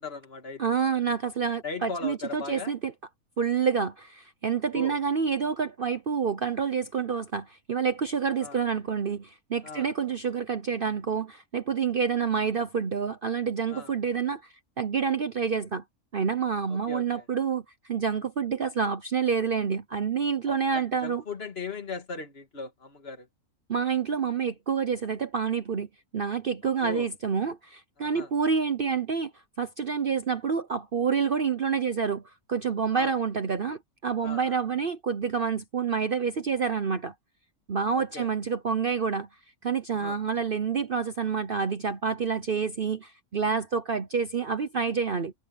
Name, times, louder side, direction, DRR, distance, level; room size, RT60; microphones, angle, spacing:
voice 1, 0.0-0.7 1.6-2.7 4.7-5.0 8.4-8.6 9.6-9.9 13.7-13.9 16.7-17.2 20.5-23.3 26.8-27.1 28.0-28.3 32.9-33.2 34.2-34.6 38.0-38.3 39.9-40.2, left 4 dB, 40° left, 2.3 m, -38 dB
voice 2, 0.6-2.9 3.4-15.8 16.1-21.2 23.7-25.9 26.1-29.3 29.6-32.2 32.5-37.1 37.7-39.3 39.6-45.3, right 6 dB, 45° right, 0.8 m, -28 dB
omnidirectional pair, 1.6 m